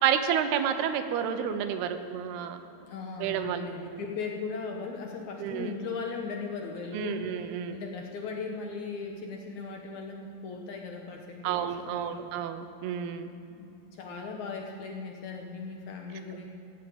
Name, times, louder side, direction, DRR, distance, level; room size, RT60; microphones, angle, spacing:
voice 1, 0.0-2.6 3.2-4.0 5.4-5.7 6.9-7.8 11.4-13.3, right 8 dB, 90° right, 9 dB, 2.8 m, -30 dB
voice 2, 2.9-7.3 7.7-12.3 13.5-16.5, left 4 dB, 70° left, 1 dB, 1.9 m, -38 dB
16.5 x 7.4 x 8.6 m, 2.8 s
omnidirectional pair, 4.4 m